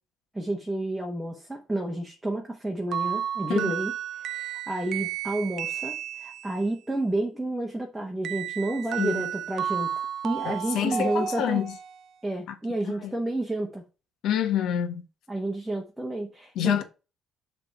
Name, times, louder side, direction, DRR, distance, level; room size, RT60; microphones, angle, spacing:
voice 1, 0.3-3.9 4.2-9.9 10.2-11.6 12.2-13.8 15.3-16.8, right 1 dB, 5° right, 1.0 m, -30 dB
sound 1, 2.9-6.7 8.2-12.0, right 9 dB, 55° right, 0.5 m, -32 dB
voice 2, 9.0-9.3 10.4-11.7 12.5-12.6 13.0-13.1 14.2-15.0 16.5-16.8, left 10 dB, 70° left, 1.3 m, -27 dB
6.8 x 3.5 x 5.6 m
cardioid pair, 170°, 0 cm